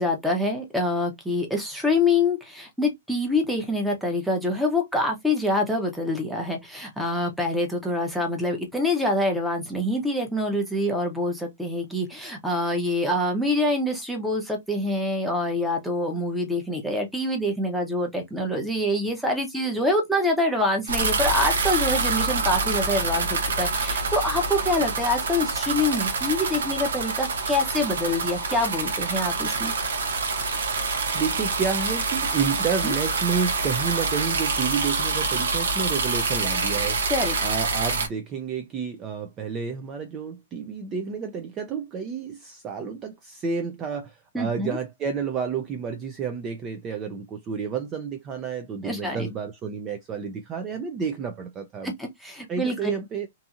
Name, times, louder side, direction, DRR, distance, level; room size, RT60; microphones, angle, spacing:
voice 1, 0.0-29.7 32.8-32.9 37.1-37.4 44.3-44.8 48.8-49.3 52.0-52.9, left 1 dB, ahead, 0.8 m, -25 dB
sound 1, 20.9-38.1, right 4 dB, 85° right, 0.8 m, -26 dB
voice 2, 31.1-37.1 37.4-51.9 52.5-53.3, right 6 dB, 25° right, 0.4 m, -30 dB
2.7 x 2.5 x 2.4 m
hypercardioid pair, 145°, 0 cm